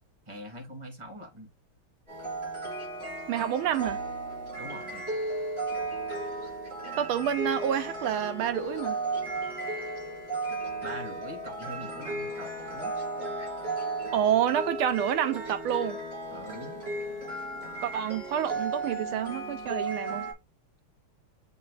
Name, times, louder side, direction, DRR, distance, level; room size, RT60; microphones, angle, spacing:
voice 1, 0.3-1.5 4.6-5.1 10.8-12.9 16.3-16.8, equal, 15° right, 1.9 m, -43 dB
sound 1, 2.1-20.3, right 2 dB, 30° right, 4.8 m, -35 dB
voice 2, 3.3-4.0 7.0-9.0 14.1-16.0 17.8-20.3, right 10 dB, 80° right, 1.4 m, -28 dB
7.4 x 5.6 x 2.4 m
omnidirectional pair, 2.4 m